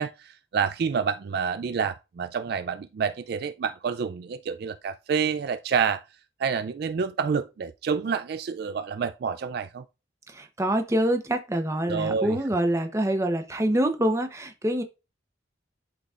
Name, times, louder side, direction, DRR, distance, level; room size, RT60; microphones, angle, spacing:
voice 1, 0.0-6.0 6.4-9.8 11.9-12.4, right 6 dB, 55° right, 0.3 m, -28 dB
voice 2, 10.3-14.8, right 1 dB, 15° right, 0.8 m, -25 dB
11.5 x 3.9 x 2.4 m
head